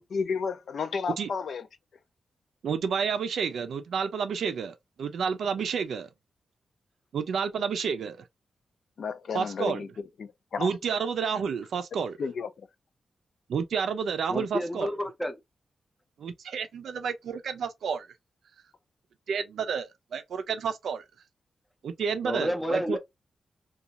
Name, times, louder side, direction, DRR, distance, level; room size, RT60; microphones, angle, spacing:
voice 1, 0.0-1.7 9.0-9.9 10.2-10.7 12.2-12.7, left 5 dB, 60° left, 0.4 m, -32 dB
voice 2, 2.6-6.1 7.1-8.2 9.3-9.8 10.6-12.2 13.5-14.9 16.2-18.1 19.3-21.0 21.8-23.0, right 6 dB, 80° right, 0.5 m, -30 dB
voice 3, 14.3-15.4 22.2-23.0, equal, 5° left, 0.5 m, -30 dB
2.5 x 2.3 x 2.8 m
wide cardioid pair, 170°, 0 cm